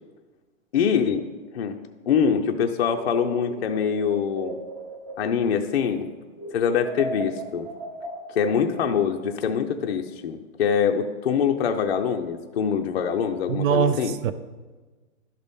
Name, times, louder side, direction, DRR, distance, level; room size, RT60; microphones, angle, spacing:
voice 1, 0.7-1.2 1.5-1.8 2.1-4.6 5.2-6.1 6.5-7.7 8.3-14.1, left 7 dB, 50° left, 4 dB, 0.5 m, -24 dB
sound 1, 2.8-6.1 6.4-9.4, right 1 dB, 20° right, 0.7 m, -37 dB
voice 2, 13.5-14.3, right 7 dB, 75° right, 12 dB, 0.6 m, -22 dB
12.0 x 4.1 x 3.5 m, 1.3 s
hypercardioid pair, 175°, 40 cm